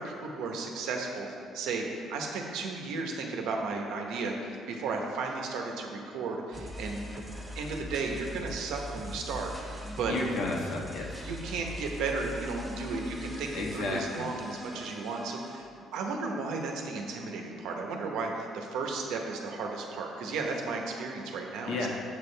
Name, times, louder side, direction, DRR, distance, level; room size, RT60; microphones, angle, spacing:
voice 1, 0.0-4.3 4.7-7.2 7.6-10.1 11.2-21.9, right 4 dB, 85° right, 1 dB, 1.0 m, -34 dB
sound 1, 6.5-15.6, equal, ahead, 0.7 m, -42 dB
voice 2, 10.1-11.3 13.5-14.3 21.7-21.9, left 3 dB, 60° left, -1 dB, 1.2 m, -32 dB
7.5 x 7.3 x 3.4 m, 2.5 s
cardioid pair, 170°, 0 cm